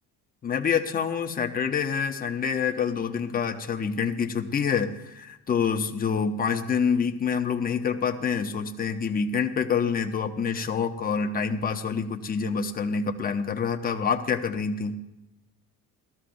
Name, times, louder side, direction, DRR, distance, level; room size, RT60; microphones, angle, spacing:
voice 1, 0.4-15.0, left 6 dB, 25° left, 5 dB, 0.7 m, -27 dB
19.0 x 13.5 x 2.6 m, 0.98 s
cardioid pair, 175°, 36 cm